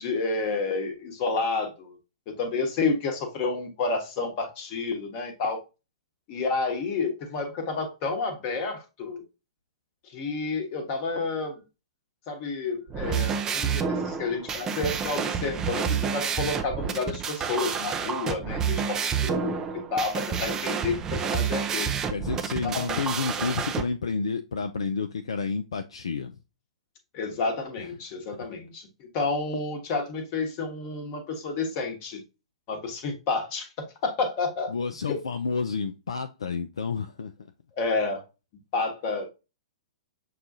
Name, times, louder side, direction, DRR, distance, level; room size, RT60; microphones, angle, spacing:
voice 1, 0.0-2.0 2.4-5.6 6.3-9.2 10.1-11.6 12.3-19.6 19.9-21.9 22.6-23.0 27.1-28.9 29.1-32.2 32.7-34.7 35.1-35.2 37.7-38.2 38.7-39.3, left 3 dB, 35° left, 1.0 m, -30 dB
sound 1, 12.9-23.8, right 7 dB, 15° right, 0.5 m, -29 dB
voice 2, 22.1-26.4 27.8-27.9 28.3-28.5 34.7-37.3, left 5 dB, 65° left, 0.3 m, -30 dB
6.4 x 2.3 x 2.6 m
figure-of-eight pair, 110°, 3 cm